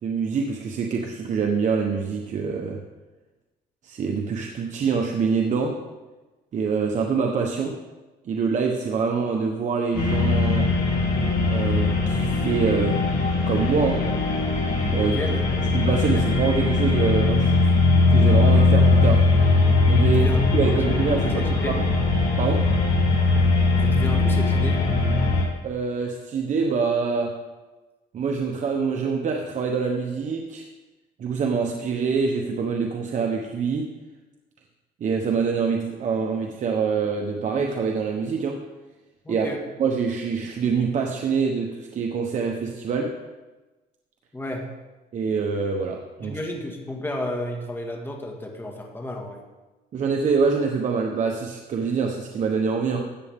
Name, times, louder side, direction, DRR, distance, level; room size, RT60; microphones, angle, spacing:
voice 1, 0.0-2.8 3.8-5.8 6.5-7.8 8.2-10.7 11.5-13.0 13.5-14.0 14.9-15.1 15.7-17.8 18.1-19.2 19.9-20.2 20.5-21.8 22.4-22.7 25.6-27.4 28.1-30.7 31.2-33.9 35.0-38.6 39.3-39.5 39.8-43.1 45.1-46.4 49.9-53.0, right 5 dB, 45° right, 2 dB, 1.1 m, -25 dB
sound 1, 9.9-25.4, left 3 dB, 70° left, 4.3 m, -20 dB
voice 2, 14.9-15.7 16.1-16.2 20.0-21.8 23.8-24.9 39.2-39.6 44.3-44.7 46.2-49.4, left 1 dB, 15° left, 1 dB, 1.9 m, -32 dB
14.0 x 8.4 x 3.7 m, 1.2 s
cardioid pair, 110°, 17 cm